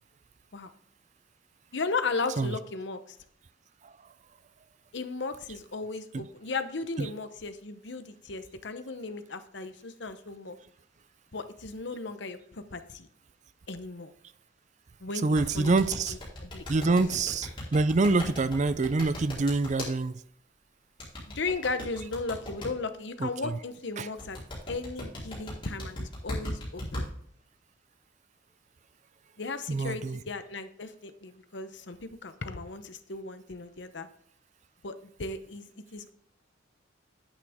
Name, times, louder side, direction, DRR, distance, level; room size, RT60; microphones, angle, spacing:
voice 1, 1.7-3.2 4.9-10.6 11.3-13.1 13.7-14.1 15.0-15.7 16.4-17.0 21.3-24.4 24.7-27.1 29.4-34.1 34.8-36.1, left 3 dB, 65° left, 0.9 m, -36 dB
voice 2, 15.1-16.1 16.7-20.2 23.2-23.6 24.0-24.1 29.7-30.2, right 3 dB, 40° right, 0.4 m, -26 dB
sound 1, 15.3-19.9 21.0-22.7 24.2-27.0, left 1 dB, 25° left, 4.3 m, -37 dB
9.8 x 8.8 x 3.6 m
head